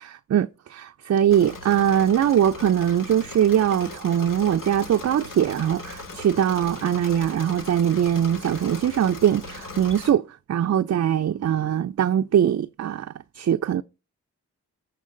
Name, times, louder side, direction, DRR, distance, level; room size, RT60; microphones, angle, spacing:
voice 1, 0.0-13.1 13.3-13.8, right 10 dB, 50° right, 0.5 m, -22 dB
Engine / Mechanisms, 1.3-10.1, left 3 dB, 70° left, 2.1 m, -39 dB
14.5 x 4.8 x 3.8 m
cardioid pair, 45°, 33 cm